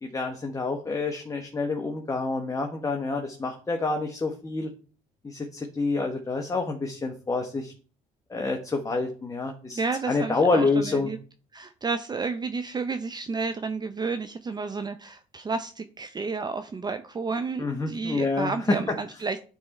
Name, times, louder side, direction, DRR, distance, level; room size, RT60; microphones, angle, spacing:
voice 1, 0.0-4.7 5.2-7.7 8.3-9.8 10.1-11.1 17.6-19.0, left 3 dB, 20° left, 3 dB, 1.1 m, -27 dB
voice 2, 9.7-11.2 11.5-19.4, right 4 dB, 25° right, 9 dB, 0.5 m, -31 dB
9.6 x 3.5 x 4.1 m, 0.39 s
supercardioid pair, 80°, 16 cm